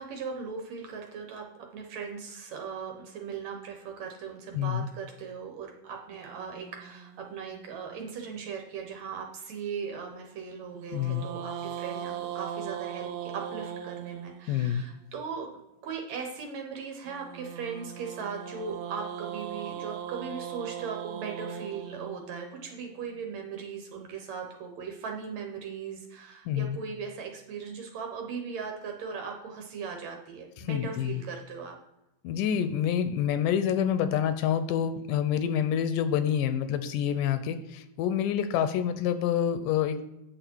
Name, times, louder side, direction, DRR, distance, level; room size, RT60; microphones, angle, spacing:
voice 1, 0.0-31.8, right 6 dB, 65° right, 3 dB, 2.0 m, -38 dB
voice 2, 4.5-4.9 10.9-11.3 14.5-14.8 26.5-26.8 30.6-31.2 32.2-40.1, left 9 dB, 80° left, 11 dB, 2.0 m, -27 dB
sound 1, 6.1-8.5 10.8-14.9 17.1-23.3, right 9 dB, 85° right, 1.5 m, -40 dB
8.9 x 6.9 x 4.5 m, 0.93 s
omnidirectional pair, 3.9 m